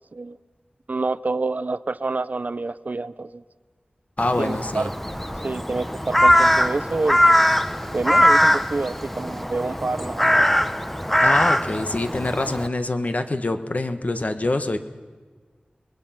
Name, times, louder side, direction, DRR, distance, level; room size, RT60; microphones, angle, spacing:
voice 1, 0.9-3.4 4.4-4.9 5.4-7.2 7.9-10.5, right 3 dB, 55° right, 16 dB, 0.6 m, -27 dB
voice 2, 4.2-4.9 11.2-14.8, left 2 dB, 50° left, 8 dB, 1.5 m, -25 dB
Crow, 4.2-12.7, equal, 5° left, 0.9 m, -21 dB
28.5 x 21.0 x 5.9 m, 1.5 s
wide cardioid pair, 55°, 3 cm